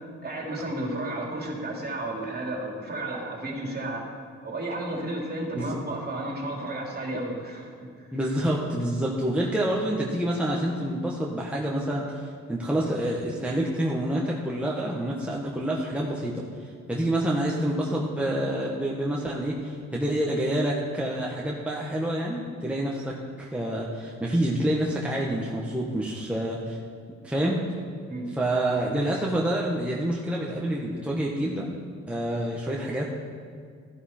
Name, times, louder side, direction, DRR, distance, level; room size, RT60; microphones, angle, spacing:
voice 1, 0.2-4.0 4.4-7.7 28.1-28.2, right 1 dB, 30° right, -1 dB, 3.0 m, -32 dB
voice 2, 8.1-26.8 27.2-27.6 28.3-31.7 32.1-33.1, right 1 dB, 5° right, -3 dB, 1.4 m, -27 dB
13.0 x 11.0 x 4.5 m, 2.2 s
cardioid pair, 90°, 30 cm